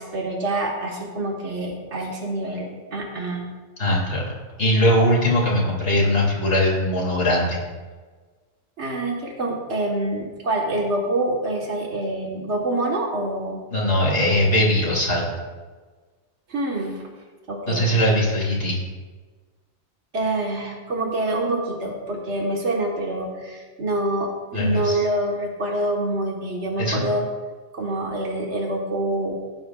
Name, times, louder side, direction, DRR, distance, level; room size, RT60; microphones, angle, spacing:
voice 1, 0.0-3.5 8.8-13.6 16.5-17.0 17.5-17.9 20.1-27.2 27.7-29.3, right 1 dB, 80° right, 0 dB, 1.7 m, -26 dB
voice 2, 3.8-7.6 13.7-15.3 17.7-18.8 24.5-25.0 26.8-27.0, equal, 80° left, -4 dB, 3.1 m, -21 dB
16.0 x 9.8 x 2.4 m, 1.4 s
omnidirectional pair, 1.2 m